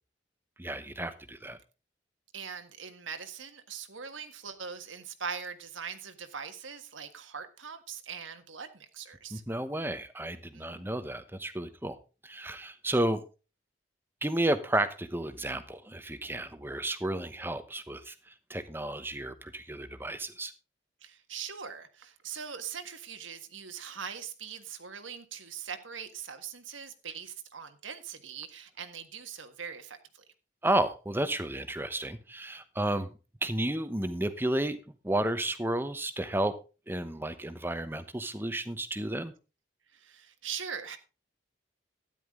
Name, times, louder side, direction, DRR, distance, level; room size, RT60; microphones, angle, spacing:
voice 1, 0.6-1.6 9.3-12.0 12.2-13.2 14.2-18.1 18.5-20.5 30.6-33.1 33.4-34.8 35.0-36.5 36.9-39.3, right 1 dB, 10° right, 1.0 m, -32 dB
voice 2, 2.3-9.4 10.5-10.9 21.0-30.2 39.9-41.0, right 7 dB, 85° right, 1.6 m, -41 dB
13.0 x 10.5 x 3.7 m
head